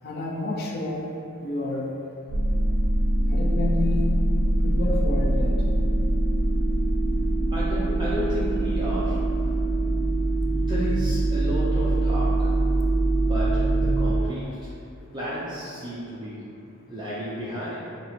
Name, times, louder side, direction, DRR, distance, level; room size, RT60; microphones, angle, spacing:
voice 1, 0.0-1.1 1.4-1.9 3.3-4.1 4.6-5.6, left 2 dB, 50° left, -2 dB, 0.5 m, -29 dB
sound 1, 2.3-14.1, right 1 dB, 85° right, 0.5 m, -23 dB
voice 2, 7.5-9.5 10.5-12.6 13.2-14.7 15.1-16.5 16.9-17.9, equal, 20° right, -9 dB, 0.4 m, -33 dB
4.4 x 2.0 x 4.0 m, 2.6 s
head